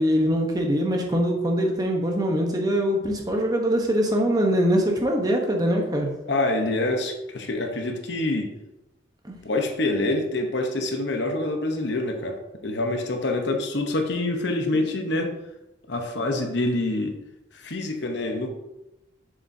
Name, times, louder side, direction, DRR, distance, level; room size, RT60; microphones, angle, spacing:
voice 1, 0.0-6.1 9.2-9.3 15.1-15.3, equal, 20° right, 1 dB, 0.9 m, -23 dB
voice 2, 6.3-8.5 9.4-15.3 15.9-17.2 17.5-18.5, left 2 dB, 60° left, 3 dB, 0.9 m, -26 dB
7.0 x 6.8 x 2.7 m, 0.93 s
head